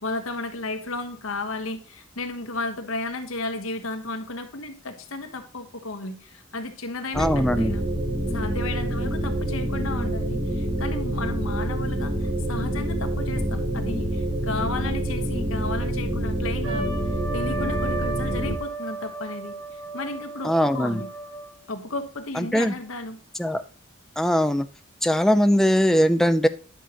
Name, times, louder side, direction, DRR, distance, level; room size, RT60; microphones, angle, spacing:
voice 1, 0.0-7.8 8.3-16.9 17.3-21.1 21.7-23.2, left 2 dB, 80° left, 6 dB, 1.3 m, -33 dB
voice 2, 7.1-7.7 20.4-21.0 22.4-22.7 23.4-23.6 24.2-24.7 25.0-26.5, equal, ahead, 8 dB, 0.4 m, -20 dB
sound 1, 7.1-18.6, right 1 dB, 20° right, 1.0 m, -27 dB
Trumpet, 16.6-21.6, right 3 dB, 80° right, 3.2 m, -34 dB
10.5 x 6.2 x 3.0 m, 0.37 s
head